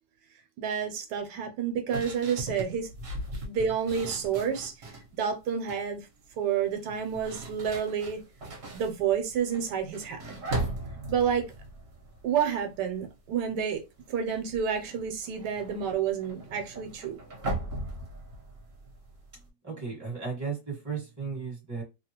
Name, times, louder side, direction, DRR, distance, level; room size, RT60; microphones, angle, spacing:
voice 1, 0.6-2.9 3.4-6.0 6.4-8.2 8.7-10.2 11.1-11.5 12.2-13.8 14.1-17.2, right 7 dB, 80° right, 1.2 m, -29 dB
sound 1, 1.9-5.1 5.5-5.9 6.8-13.1 13.3-13.7 14.0-19.5, right 1 dB, 45° right, 1.0 m, -39 dB
voice 2, 19.6-21.8, right 5 dB, 10° right, 1.3 m, -35 dB
2.9 x 2.3 x 2.8 m
omnidirectional pair, 1.8 m